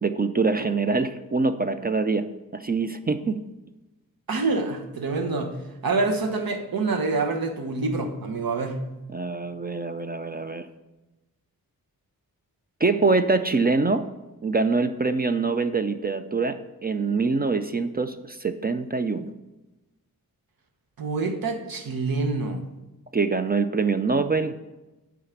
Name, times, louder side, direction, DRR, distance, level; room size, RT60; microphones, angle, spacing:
voice 1, 0.0-2.3 2.5-3.4 9.1-10.7 12.8-14.1 14.4-19.3 23.1-24.5, right 4 dB, 25° right, 9 dB, 0.4 m, -24 dB
voice 2, 4.3-5.6 5.8-8.8 21.0-22.7, right 3 dB, 75° right, 5 dB, 1.2 m, -26 dB
8.4 x 4.9 x 5.9 m, 1.0 s
wide cardioid pair, 135°, 35 cm